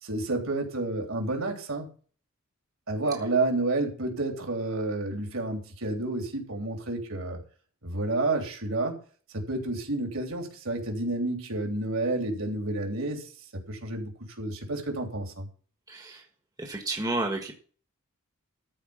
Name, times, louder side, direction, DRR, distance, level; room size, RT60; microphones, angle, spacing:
voice 1, 0.0-1.9 2.9-7.4 7.8-9.0 9.3-13.3 13.7-15.5, right 2 dB, 65° right, 2 dB, 3.5 m, -30 dB
voice 2, 15.9-16.2 16.6-17.5, right 2 dB, 15° right, 3 dB, 1.5 m, -31 dB
13.5 x 5.0 x 8.7 m, 0.41 s
head